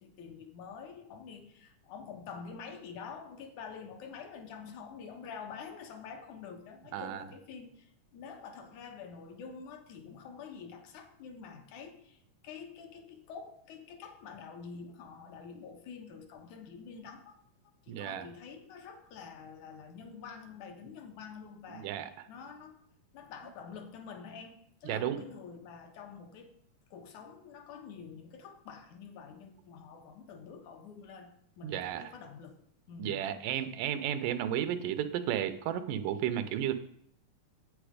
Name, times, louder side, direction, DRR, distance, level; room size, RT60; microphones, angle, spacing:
voice 1, 0.0-12.2 12.4-17.4 17.8-21.9 22.3-22.8 23.1-26.5 26.9-32.6 32.9-33.2, left 6 dB, 70° left, 5 dB, 2.5 m, -47 dB
voice 2, 6.9-7.3 17.9-18.3 21.7-22.1 24.8-25.2 31.6-32.1 33.0-36.7, right 10 dB, 85° right, 11 dB, 2.4 m, -33 dB
9.1 x 8.6 x 5.0 m, 0.70 s
omnidirectional pair, 3.7 m